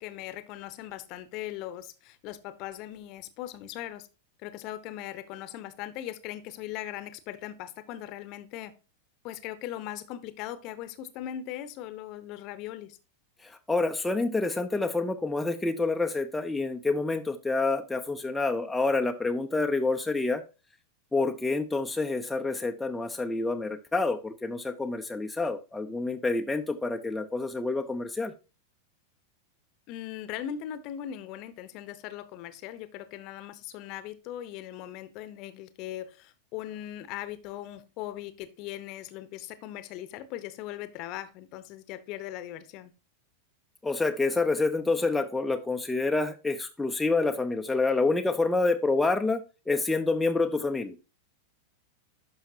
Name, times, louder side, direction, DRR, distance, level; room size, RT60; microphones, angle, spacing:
voice 1, 0.0-4.1 4.4-8.7 9.2-13.0 29.9-42.9, left 12 dB, 40° left, 14 dB, 0.8 m, -39 dB
voice 2, 13.4-20.4 21.1-28.3 43.8-51.0, left 3 dB, 5° left, 4 dB, 0.6 m, -28 dB
11.0 x 5.5 x 2.8 m, 0.32 s
figure-of-eight pair, 90°, 0 cm